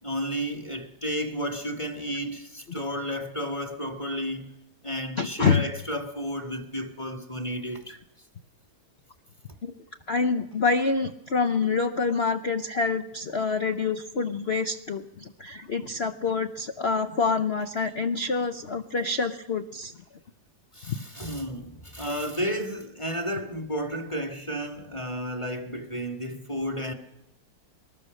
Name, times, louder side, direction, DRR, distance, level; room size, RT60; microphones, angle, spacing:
voice 1, 0.0-4.6 4.8-7.9 20.7-26.9, equal, 15° left, 1.6 m, -32 dB
voice 2, 5.2-5.6 9.6-9.7 10.1-19.9 20.9-21.0, left 4 dB, 70° left, 0.5 m, -26 dB
23.0 x 19.5 x 6.4 m
omnidirectional pair, 2.3 m